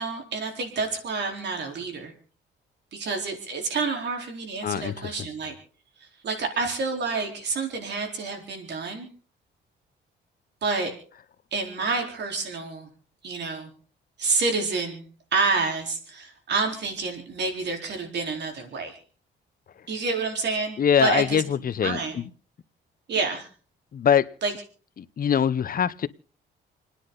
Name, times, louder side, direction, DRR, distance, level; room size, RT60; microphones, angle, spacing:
voice 1, 0.0-2.1 2.9-5.5 6.2-9.1 10.6-10.9 11.5-12.9 13.2-13.7 14.2-15.0 15.3-19.0 19.9-22.2 23.1-23.5 24.4-24.6, right 4 dB, 60° right, 4.1 m, -28 dB
voice 2, 4.6-5.1 20.8-22.2 23.9-24.3 25.0-26.1, left 8 dB, 45° left, 0.8 m, -23 dB
29.5 x 10.0 x 3.9 m
cardioid pair, 90°, 20 cm